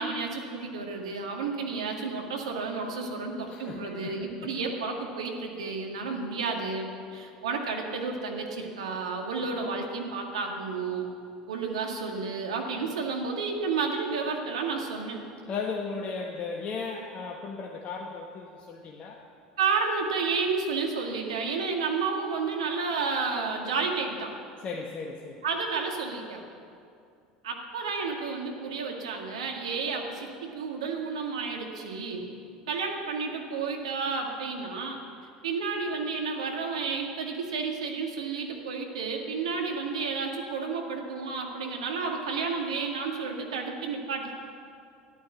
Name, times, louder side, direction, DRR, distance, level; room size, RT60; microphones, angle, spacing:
voice 1, 0.0-11.1 11.5-15.2 19.6-24.3 25.4-26.4 27.4-32.2 32.7-35.0 35.4-44.3, right 4 dB, 80° right, 2 dB, 1.9 m, -31 dB
voice 2, 3.5-4.5 15.5-19.3 24.6-25.4, left 4 dB, 40° left, 1 dB, 1.3 m, -36 dB
13.5 x 11.5 x 7.3 m, 2.4 s
hypercardioid pair, 75°, 3 cm